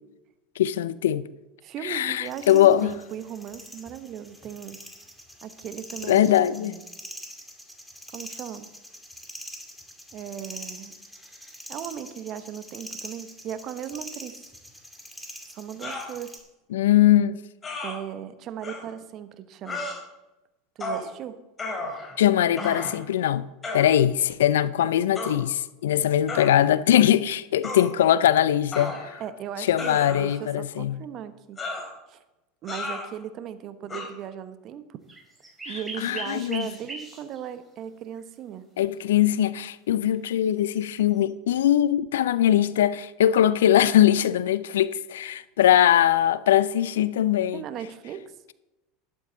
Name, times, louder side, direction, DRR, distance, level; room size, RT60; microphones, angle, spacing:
voice 1, 0.6-1.3 1.8-3.0 6.1-6.8 16.7-17.4 22.2-23.5 23.7-28.9 29.7-31.0 36.0-36.7 38.8-47.6, left 11 dB, 75° left, 0.5 m, -21 dB
voice 2, 1.6-4.8 5.4-6.3 6.6-6.8 8.1-8.7 10.1-11.0 11.7-14.4 15.5-16.4 17.8-19.8 20.7-21.4 29.2-31.6 32.1-32.2 32.6-35.0 35.6-38.7 47.5-48.3, right 9 dB, 45° right, 1.0 m, -37 dB
sound 1, 2.2-16.4, equal, ahead, 2.5 m, -44 dB
sound 2, 15.8-16.1 17.6-17.9 18.6-18.8 19.6-20.0 20.8-21.1 21.6-22.2 22.6-23.0 23.6-23.9 25.1-25.4 26.3-26.5 27.6-27.9 28.7-29.3 29.8-30.4 31.6-31.9 32.7-33.1 33.9-34.1, left 2 dB, 25° left, 3.7 m, -33 dB
sound 3, 35.1-37.5 38.2-38.3 40.6-41.2, right 2 dB, 15° right, 5.0 m, -40 dB
12.0 x 11.5 x 4.0 m
hypercardioid pair, 85°, 0 cm